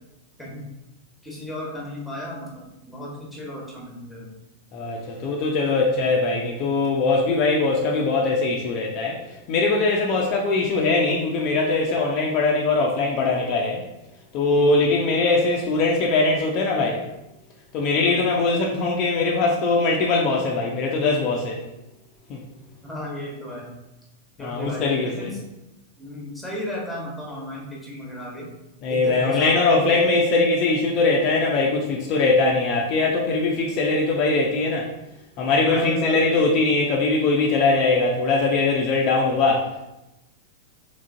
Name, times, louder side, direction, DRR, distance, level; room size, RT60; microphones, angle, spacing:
voice 1, 1.2-4.3 14.5-14.9 17.9-18.1 22.8-23.7 24.4-25.4 26.0-28.5 28.9-30.1 35.6-36.4, left 1 dB, ahead, -4 dB, 1.2 m, -34 dB
voice 2, 4.7-9.2 9.5-13.8 14.3-17.0 17.7-21.6 22.3-22.4 24.4-25.3 28.8-34.9 35.4-39.8, left 3 dB, 40° left, -1 dB, 0.5 m, -21 dB
3.6 x 3.2 x 2.5 m, 0.93 s
figure-of-eight pair, 95°, 0 cm